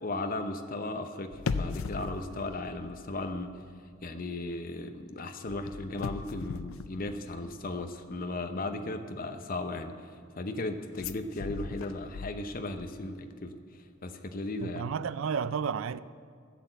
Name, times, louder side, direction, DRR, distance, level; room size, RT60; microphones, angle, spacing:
voice 1, 0.0-3.5 4.0-14.9, left 2 dB, 45° left, 0.8 m, -36 dB
sound 1, 1.3-3.6 3.9-4.2 5.5-7.7 10.9-12.8 13.1-13.2, left 4 dB, 90° left, 0.5 m, -38 dB
voice 2, 14.6-16.0, right 6 dB, 75° right, 0.4 m, -32 dB
14.5 x 6.5 x 7.9 m
head